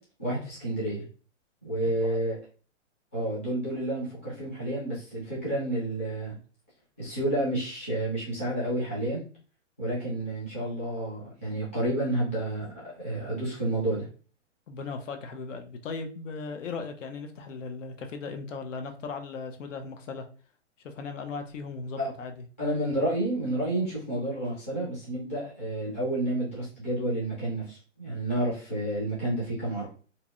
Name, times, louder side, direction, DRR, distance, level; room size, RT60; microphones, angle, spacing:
voice 1, 0.2-1.0 1.6-2.4 3.1-6.4 7.0-9.2 9.8-14.0 22.0-22.1 22.6-29.9, right 1 dB, 10° left, -10 dB, 0.4 m, -30 dB
voice 2, 1.8-2.2 14.7-20.3 20.8-22.3, left 4 dB, 80° left, 6 dB, 0.7 m, -37 dB
2.7 x 2.0 x 2.3 m, 0.39 s
hypercardioid pair, 160°, 37 cm